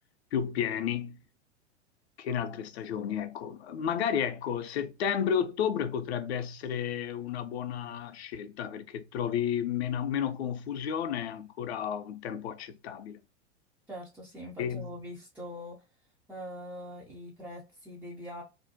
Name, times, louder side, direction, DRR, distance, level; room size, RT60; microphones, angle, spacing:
voice 1, 0.3-1.2 2.2-13.2 14.6-14.9, left 8 dB, 60° left, 0.5 m, -32 dB
voice 2, 13.9-15.8 16.3-18.4, equal, 5° right, 0.3 m, -43 dB
2.5 x 2.1 x 2.6 m
figure-of-eight pair, 95°, 36 cm